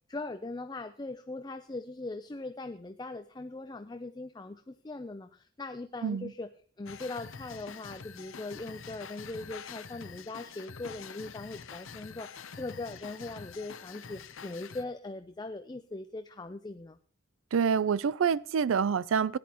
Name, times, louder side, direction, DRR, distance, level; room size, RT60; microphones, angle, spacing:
voice 1, 0.1-6.5 6.8-17.0, left 2 dB, 20° left, 0.4 m, -40 dB
sound 1, 6.9-14.8, left 6 dB, 90° left, 0.7 m, -46 dB
voice 2, 17.5-19.4, right 6 dB, 85° right, 0.4 m, -27 dB
17.5 x 10.5 x 3.0 m
head